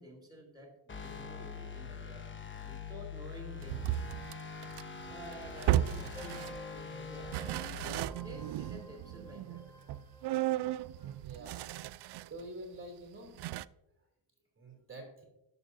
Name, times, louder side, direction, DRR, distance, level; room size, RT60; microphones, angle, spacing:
voice 1, 0.0-2.2 2.6-3.9 5.0-6.5 6.7-7.6 8.2-9.6, equal, 10° right, -1 dB, 3.2 m, -50 dB
sound 1, 0.9-8.0, left 6 dB, 25° left, 1.1 m, -44 dB
sound 2, 3.6-6.8 7.2-12.4 12.7-12.8 13.4-13.6, right 14 dB, 65° right, 0.5 m, -35 dB
sound 3, 6.1-11.2, left 1 dB, 10° left, 3.0 m, -52 dB
voice 2, 11.2-11.6 12.3-13.4 14.6-15.2, right 1 dB, 25° right, 1 dB, 3.0 m, -47 dB
16.0 x 7.1 x 2.7 m, 0.92 s
cardioid pair, 85°, 45 cm